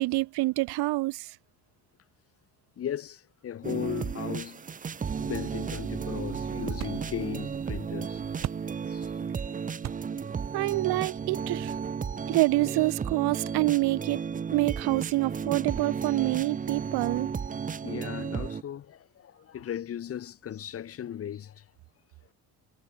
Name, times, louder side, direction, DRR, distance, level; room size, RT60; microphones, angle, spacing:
voice 1, 0.0-1.3 10.5-11.7 12.3-14.2 14.5-17.3, right 20 dB, 80° right, 1.1 m, -27 dB
voice 2, 2.8-4.6 5.2-9.1 9.5-9.6 17.8-21.6, left 10 dB, 35° left, 1.2 m, -37 dB
sound 1, 3.6-18.6, right 6 dB, 20° right, 0.9 m, -34 dB
sound 2, 5.1-12.2, right 12 dB, 45° right, 1.1 m, -45 dB
cardioid pair, 155°, 38 cm